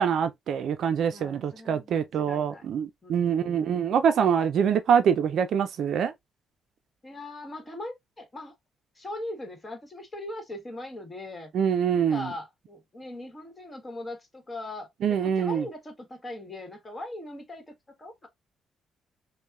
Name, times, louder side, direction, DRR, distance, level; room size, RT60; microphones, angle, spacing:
voice 1, 0.0-6.1 11.5-12.3 15.0-15.6, right 7 dB, 70° right, 0.4 m, -25 dB
voice 2, 1.1-2.7 3.0-3.8 7.0-8.5 9.0-11.5 12.1-18.3, left 1 dB, 25° left, 1.2 m, -40 dB
5.3 x 2.1 x 2.3 m
cardioid pair, 90°, 0 cm